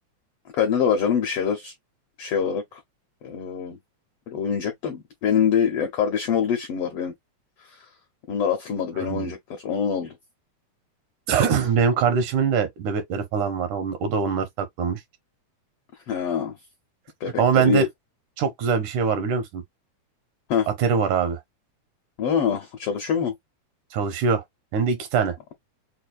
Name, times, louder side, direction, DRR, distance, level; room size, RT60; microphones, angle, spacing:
voice 1, 0.5-1.7 2.2-2.8 3.2-3.8 4.3-7.1 7.6-7.9 8.3-10.2 16.1-16.5 17.2-17.9 20.5-20.7 22.2-23.3, left 7 dB, 80° left, 1.3 m, -25 dB
voice 2, 9.0-9.3 11.3-15.0 17.4-17.9 18.4-19.6 20.7-21.4 23.9-24.4 24.7-25.4, right 6 dB, 75° right, 2.5 m, -23 dB
6.2 x 2.3 x 2.4 m
omnidirectional pair, 3.6 m